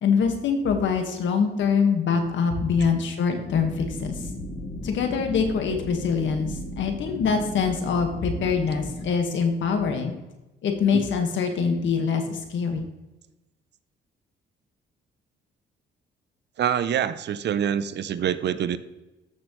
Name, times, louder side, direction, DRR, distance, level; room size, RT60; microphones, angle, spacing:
voice 1, 0.0-4.1 4.8-10.1 10.6-12.9, left 6 dB, 70° left, 5 dB, 1.7 m, -24 dB
sound 1, 3.5-9.1, left 1 dB, 35° left, 1.8 m, -35 dB
voice 2, 16.6-18.8, right 9 dB, 60° right, 14 dB, 0.6 m, -25 dB
13.5 x 6.2 x 3.2 m, 1.0 s
cardioid pair, 90°, 20 cm